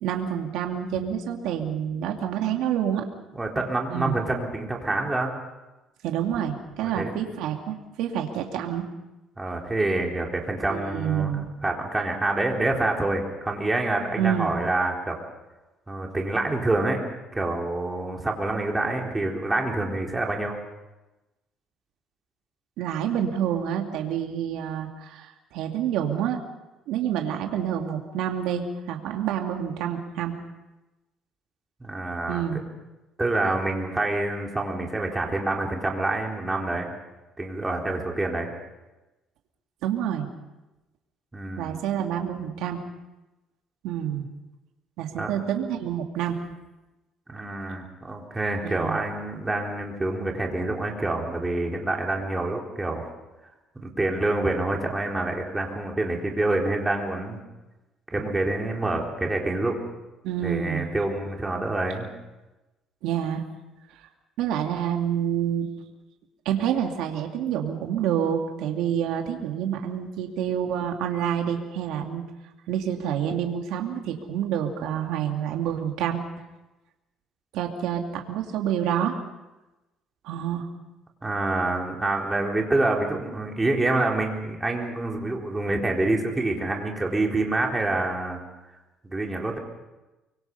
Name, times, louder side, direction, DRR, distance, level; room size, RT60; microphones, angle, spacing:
voice 1, 0.0-3.1 3.9-4.2 6.0-8.8 10.7-11.5 14.2-14.7 22.8-26.4 26.9-30.3 32.3-32.6 39.8-40.3 41.6-42.8 43.8-44.3 45.0-46.4 48.6-49.0 60.2-60.9 63.0-63.4 64.0-64.1 64.4-65.7 66.5-72.2 72.7-76.2 77.5-79.2 80.2-80.7, right 9 dB, 85° right, 3 dB, 2.4 m, -28 dB
voice 2, 3.3-5.3 6.8-7.1 9.4-11.3 11.6-15.2 15.9-17.0 17.3-20.6 31.8-32.4 33.2-36.9 37.4-38.5 41.3-41.8 45.2-45.3 47.3-53.0 53.7-57.4 58.1-59.8 60.4-62.1 81.2-88.4 89.0-89.6, right 2 dB, 15° right, 0 dB, 4.1 m, -27 dB
25.0 x 24.0 x 5.5 m, 1.0 s
cardioid pair, 135°, 0 cm